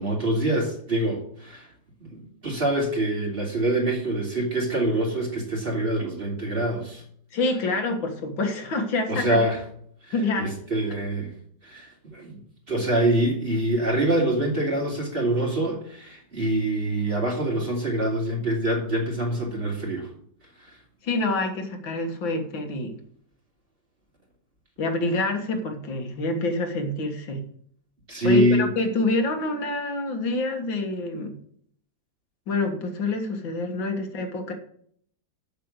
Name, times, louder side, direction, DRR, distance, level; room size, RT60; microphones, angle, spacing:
voice 1, 0.0-1.7 2.0-7.0 9.1-9.6 10.0-11.3 11.6-12.4 12.7-20.1 20.6-20.8 28.1-28.7, right 1 dB, 30° right, -1 dB, 3.0 m, -25 dB
voice 2, 7.3-9.4 10.1-10.5 21.0-22.9 24.8-27.4 28.2-31.4 32.5-34.5, left 2 dB, 80° left, 4 dB, 2.4 m, -27 dB
7.7 x 6.9 x 8.1 m, 0.63 s
omnidirectional pair, 2.0 m